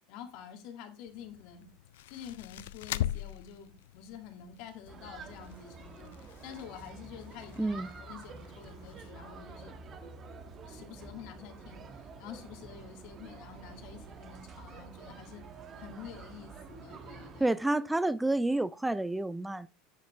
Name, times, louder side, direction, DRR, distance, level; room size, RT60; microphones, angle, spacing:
voice 1, 0.1-1.7 2.1-9.7 10.6-15.4 15.8-17.5, left 8 dB, 65° left, 1.8 m, -48 dB
sound 1, 1.1-9.1, left 13 dB, 80° left, 0.3 m, -42 dB
sound 2, 4.9-17.5, right 4 dB, 35° right, 1.2 m, -48 dB
voice 2, 17.4-19.7, right 2 dB, 10° right, 0.3 m, -29 dB
7.9 x 6.6 x 3.3 m
hypercardioid pair, 100°, 0 cm